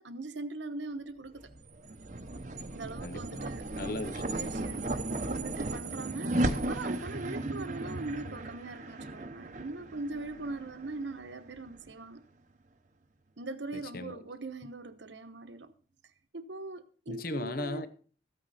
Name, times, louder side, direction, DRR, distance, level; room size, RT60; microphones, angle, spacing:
voice 1, 0.0-1.5 2.7-3.7 4.3-4.9 5.3-12.2 13.4-15.7 16.3-17.9, right 2 dB, 75° right, 1.0 m, -41 dB
sound 1, 1.4-11.9, right 2 dB, 40° right, 0.8 m, -36 dB
voice 2, 3.0-3.5 3.8-4.5 6.3-6.6 13.7-14.2 17.1-17.9, left 2 dB, 50° left, 0.8 m, -38 dB
14.0 x 9.2 x 4.1 m
head